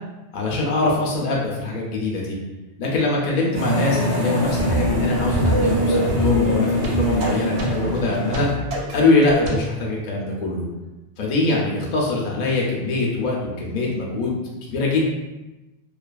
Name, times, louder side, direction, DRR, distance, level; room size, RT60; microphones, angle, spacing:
voice 1, 0.3-2.4 2.8-8.5 8.9-10.7 11.2-15.1, left 3 dB, 55° left, -3 dB, 0.5 m, -23 dB
sound 1, 3.5-8.5, equal, 30° right, 0.5 m, -24 dB
sound 2, 4.4-9.6, right 1 dB, 65° right, 0.7 m, -26 dB
2.4 x 2.3 x 2.3 m, 1.1 s
omnidirectional pair, 1.2 m